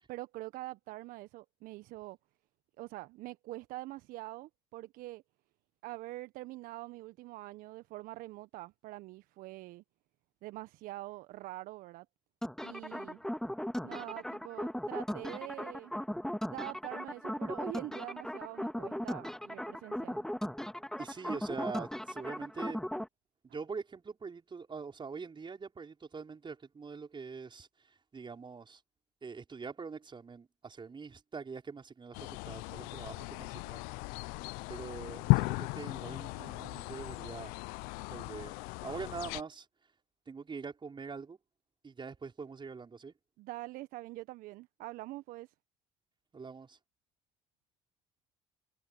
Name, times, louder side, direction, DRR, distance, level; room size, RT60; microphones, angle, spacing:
voice 1, 0.1-2.2 2.8-5.2 5.8-9.8 10.4-12.1 12.6-13.2 13.8-16.0 16.5-20.2 43.4-45.5, right 18 dB, 65° right, 1.5 m, -44 dB
sound 1, 12.4-23.1, equal, 5° left, 2.6 m, -38 dB
voice 2, 21.0-22.8 23.4-27.9 28.1-28.8 29.2-33.8 34.2-34.3 34.7-37.5 38.1-38.5 38.8-39.7 40.3-41.4 41.8-43.1 46.3-46.8, right 5 dB, 30° right, 5.5 m, -44 dB
sound 2, 32.1-39.4, left 27 dB, 70° left, 0.7 m, -35 dB
hypercardioid pair, 60°, 16 cm